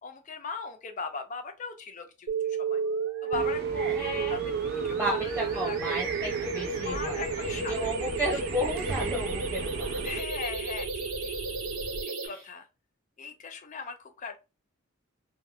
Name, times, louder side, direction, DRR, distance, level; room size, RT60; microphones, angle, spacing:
voice 1, 0.0-2.8 3.2-4.0 4.3-4.5 4.8-5.9 6.8-7.9 10.0-11.4 12.0-12.7 13.2-14.4, left 4 dB, 35° left, 7 dB, 0.4 m, -39 dB
sound 1, 2.3-12.3, right 5 dB, 80° right, 0.7 m, -32 dB
sound 2, 3.3-10.2, right 4 dB, 45° right, 0.3 m, -38 dB
voice 2, 3.9-4.4 4.9-7.2 7.7-10.0 12.2-12.4, right 1 dB, 15° right, -4 dB, 0.8 m, -33 dB
sound 3, 6.9-12.0, equal, 75° left, 0.7 m, -43 dB
2.2 x 2.1 x 3.4 m, 0.28 s
head